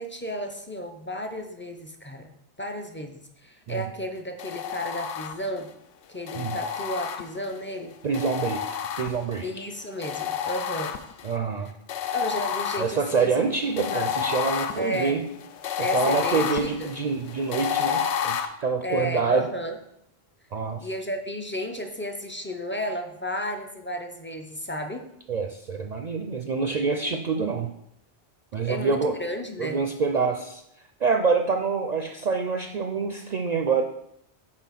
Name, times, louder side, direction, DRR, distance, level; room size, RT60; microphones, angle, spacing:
voice 1, 0.0-2.3 2.6-5.7 6.1-8.0 9.4-11.0 12.1-13.3 13.8-14.1 14.8-15.2 15.8-16.9 18.8-19.8 20.8-25.0 28.6-29.8, equal, 15° left, 4 dB, 0.4 m, -33 dB
sound 1, 4.4-5.7 6.3-7.6 8.1-9.5 10.0-11.3 11.9-18.5, left 8 dB, 85° left, 0.9 m, -30 dB
voice 2, 8.0-8.6 9.0-9.5 11.2-11.7 12.8-15.2 15.8-19.5 20.5-20.8 25.3-27.7 28.5-29.2 29.6-30.6 31.0-33.8, right 5 dB, 55° right, 4 dB, 0.5 m, -26 dB
5.8 x 4.5 x 5.8 m, 0.77 s
omnidirectional pair, 1.1 m